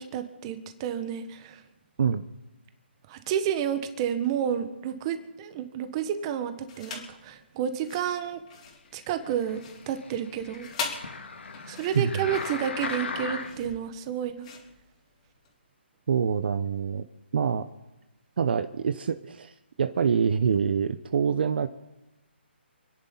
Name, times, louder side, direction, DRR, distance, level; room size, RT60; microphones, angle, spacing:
voice 1, 0.0-1.6 3.1-8.4 8.9-9.6 9.9-11.1 11.7-14.5, right 9 dB, 25° right, 9 dB, 1.4 m, -30 dB
sound 1, 6.7-7.2 7.7-15.5, left 5 dB, 35° left, 3.4 m, -41 dB
sound 2, 9.2-13.8 14.4-14.5, left 4 dB, 75° left, 2.0 m, -38 dB
voice 2, 16.1-17.0 17.3-17.6 18.4-21.7, right 6 dB, 55° right, 11 dB, 0.8 m, -26 dB
28.5 x 10.5 x 4.0 m, 1.0 s
hypercardioid pair, 155°, 6 cm